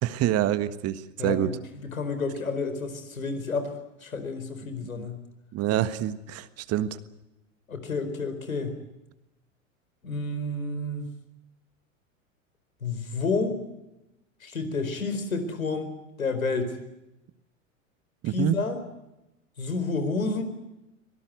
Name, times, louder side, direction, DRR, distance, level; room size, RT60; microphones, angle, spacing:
voice 1, 0.0-1.6 5.0-5.1 5.5-7.0 18.2-18.6, right 12 dB, 35° right, 14 dB, 1.6 m, -26 dB
voice 2, 1.2-3.7 4.0-5.2 7.7-8.8 10.0-11.0 12.8-13.6 14.4-15.9 16.2-16.8 18.3-18.8 19.6-20.4, left 3 dB, 85° left, 8 dB, 4.6 m, -30 dB
24.5 x 19.0 x 9.4 m, 0.93 s
hypercardioid pair, 95°, 40 cm